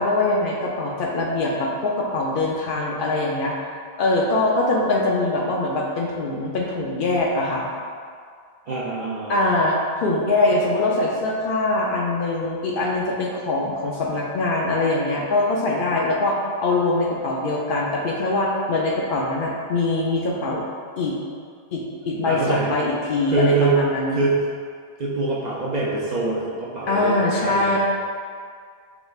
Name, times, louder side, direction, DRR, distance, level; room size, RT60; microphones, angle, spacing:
voice 1, 0.0-3.5 4.0-7.6 9.3-20.6 21.0-21.2 21.7-24.2 26.9-27.8, left 2 dB, 60° left, -2 dB, 0.6 m, -23 dB
voice 2, 8.7-9.6 22.2-22.7 23.3-23.8 24.1-24.4 25.0-27.8, right 3 dB, 55° right, -5 dB, 0.5 m, -24 dB
4.9 x 3.2 x 2.3 m, 2.1 s
omnidirectional pair, 1.1 m